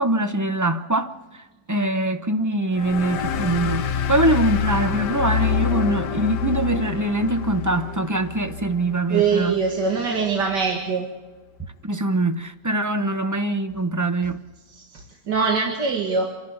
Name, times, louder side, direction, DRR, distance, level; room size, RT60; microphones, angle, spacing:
voice 1, 0.0-9.6 11.8-14.4, right 2 dB, 20° right, 0.6 m, -23 dB
sound 1, 2.7-9.8, left 7 dB, 80° left, 1.6 m, -27 dB
voice 2, 9.1-11.1 14.7-16.3, right 5 dB, 85° right, 2.6 m, -23 dB
28.5 x 11.5 x 8.0 m
omnidirectional pair, 1.8 m